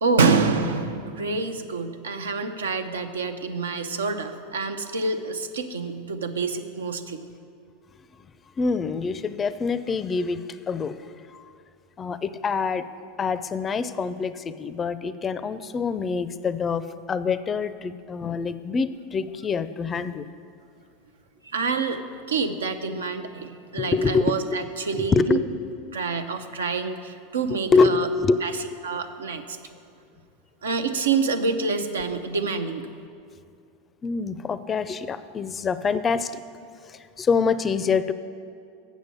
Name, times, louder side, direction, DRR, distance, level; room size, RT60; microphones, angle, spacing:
voice 1, 0.0-7.2 21.4-22.0 22.3-25.4 25.9-28.1 28.4-28.5 28.8-29.6 30.6-32.9, right 4 dB, 85° right, 8 dB, 0.6 m, -27 dB
voice 2, 8.6-10.9 11.3-11.4 12.0-12.9 13.2-20.3 23.8-24.6 25.0-25.4 27.7-28.6 34.0-36.3 36.9-38.1, left 5 dB, 25° left, 14 dB, 0.4 m, -25 dB
8.1 x 6.3 x 6.9 m, 2.4 s
hypercardioid pair, 95°, 0 cm